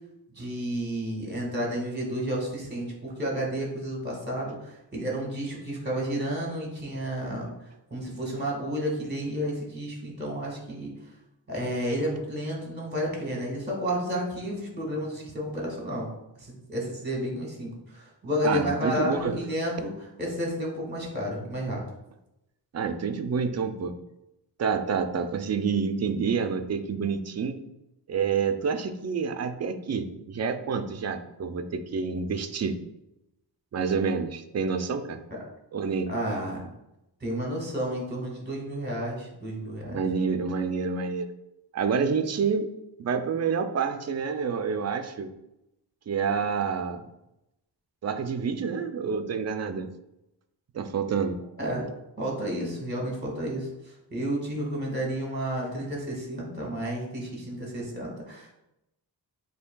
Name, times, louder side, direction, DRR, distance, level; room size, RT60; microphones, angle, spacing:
voice 1, 0.3-10.9 11.5-16.1 16.4-21.8 35.3-35.4 36.1-36.7 37.2-40.0 51.6-51.8 52.2-58.5, equal, 25° right, -2 dB, 1.5 m, -31 dB
voice 2, 18.4-19.4 22.7-23.9 24.6-27.6 28.1-32.8 33.7-35.2 35.7-36.1 39.9-41.3 41.7-42.7 43.0-45.3 46.1-47.0 48.0-49.9 50.7-51.4, right 5 dB, 40° right, 7 dB, 0.4 m, -28 dB
7.8 x 2.8 x 2.2 m, 0.89 s
wide cardioid pair, 120°, 43 cm